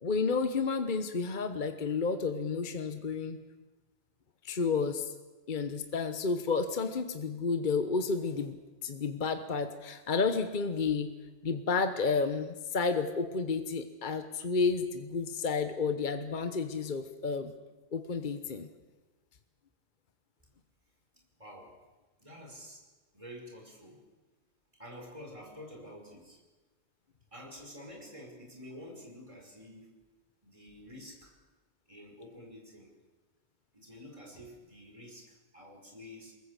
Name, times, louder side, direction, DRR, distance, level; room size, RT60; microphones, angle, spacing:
voice 1, 0.0-3.4 4.4-5.1 5.5-8.6 8.8-11.1 11.4-17.5 17.9-18.7, left 4 dB, 45° left, 9 dB, 1.2 m, -31 dB
voice 2, 21.3-21.8 22.2-22.8 23.1-24.0 24.8-26.4 27.3-29.9 30.4-31.4 31.9-32.9 33.7-36.3, equal, 30° right, 1 dB, 5.2 m, -49 dB
23.0 x 21.5 x 8.2 m, 1.2 s
omnidirectional pair, 1.2 m